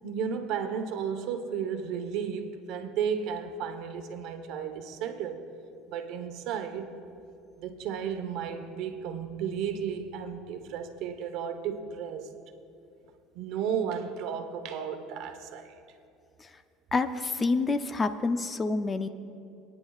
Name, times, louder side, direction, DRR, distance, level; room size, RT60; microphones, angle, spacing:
voice 1, 0.0-5.4 5.9-6.9 7.6-12.3 13.3-15.7, right 7 dB, 65° right, 1.0 m, -33 dB
voice 2, 16.9-19.1, left 3 dB, 25° left, 0.5 m, -28 dB
23.5 x 9.8 x 2.4 m
supercardioid pair, 115°, 0 cm